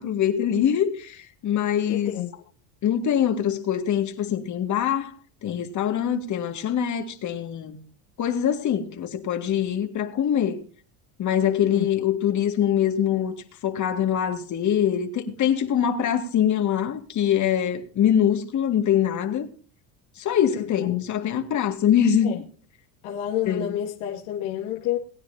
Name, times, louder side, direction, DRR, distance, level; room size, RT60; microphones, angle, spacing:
voice 1, 0.0-2.2 2.8-5.1 5.4-7.8 8.2-10.6 11.2-13.4 13.6-19.5 20.2-22.4 23.5-23.7, left 9 dB, 40° left, 2.3 m, -23 dB
voice 2, 1.9-2.4 11.4-11.9 20.5-21.1 22.2-22.4 23.0-25.0, left 12 dB, 75° left, 2.3 m, -29 dB
21.0 x 9.6 x 2.8 m
supercardioid pair, 115°, 43 cm